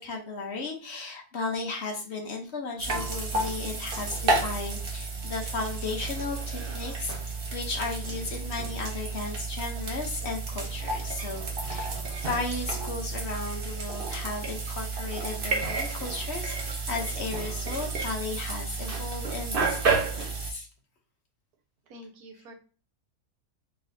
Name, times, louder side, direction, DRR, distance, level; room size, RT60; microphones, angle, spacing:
voice 1, 0.0-11.9 12.2-20.7, left 3 dB, 50° left, 1 dB, 1.0 m, -35 dB
sound 1, 2.8-20.5, right 3 dB, 45° right, 0.9 m, -31 dB
voice 2, 21.9-22.5, equal, 85° right, 4 dB, 1.3 m, -47 dB
3.9 x 3.7 x 2.6 m, 0.37 s
omnidirectional pair, 1.6 m